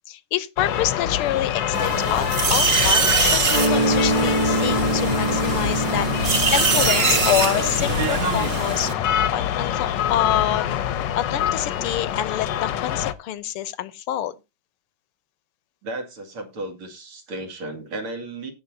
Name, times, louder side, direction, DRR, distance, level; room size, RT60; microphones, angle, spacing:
voice 1, 0.1-8.9 9.3-14.4, left 11 dB, 85° left, 1.7 m, -27 dB
sound 1, 0.6-13.1, left 10 dB, 65° left, 1.3 m, -25 dB
sound 2, 1.7-8.9, right 4 dB, 40° right, 1.0 m, -23 dB
Mallet percussion, 3.5-9.1, right 3 dB, 10° right, 1.1 m, -26 dB
voice 2, 15.8-18.5, right 2 dB, 75° right, 3.2 m, -34 dB
17.0 x 6.8 x 2.7 m
omnidirectional pair, 2.4 m